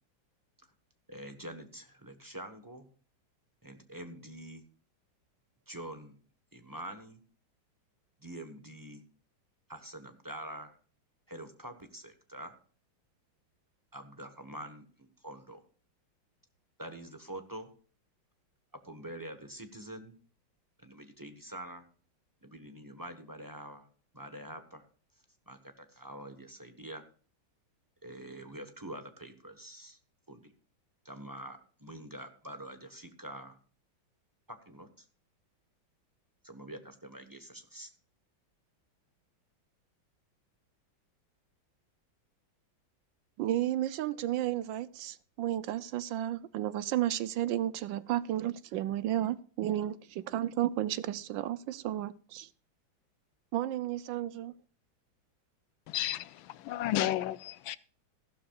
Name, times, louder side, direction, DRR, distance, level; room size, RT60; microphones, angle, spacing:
voice 1, 1.1-2.9 3.6-4.6 5.7-6.2 6.5-7.2 8.2-9.0 9.7-10.8 11.3-12.6 13.9-15.6 16.8-17.7 18.8-20.2 20.8-21.9 22.4-23.9 24.1-24.8 25.5-27.1 28.0-30.0 30.3-30.4 31.0-33.6 34.5-35.0 36.4-37.9, right 1 dB, 15° right, 0.9 m, -45 dB
voice 2, 43.4-52.5 53.5-54.5, right 12 dB, 75° right, 1.3 m, -32 dB
voice 3, 55.9-57.8, left 13 dB, 80° left, 1.4 m, -32 dB
15.0 x 12.0 x 2.4 m
omnidirectional pair, 2.2 m